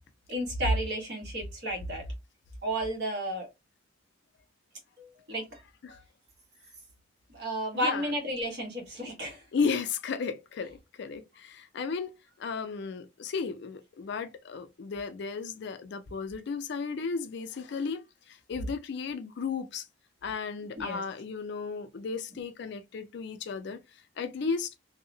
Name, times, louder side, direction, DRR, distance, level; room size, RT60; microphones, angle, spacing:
voice 1, 0.3-2.0 2.6-3.5 5.0-5.6 5.9-6.0 7.3-9.4 20.8-21.0, right 1 dB, 60° right, 1.2 m, -32 dB
voice 2, 7.7-8.2 9.5-12.1 12.4-19.9 20.2-23.8 24.2-24.7, left 5 dB, 60° left, 0.4 m, -34 dB
2.6 x 2.1 x 2.6 m
head